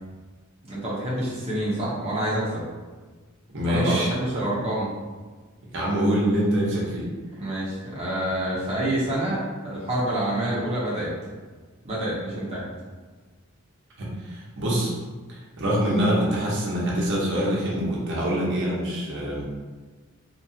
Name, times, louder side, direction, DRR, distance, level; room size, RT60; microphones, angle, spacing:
voice 1, 0.7-2.7 3.7-4.9 7.4-11.1 11.8-12.7, right 1 dB, 30° right, -7 dB, 0.7 m, -27 dB
voice 2, 3.5-4.1 5.7-7.1 14.0-14.9 15.3-19.4, equal, 60° right, -5 dB, 0.8 m, -25 dB
2.9 x 2.4 x 2.7 m, 1.4 s
head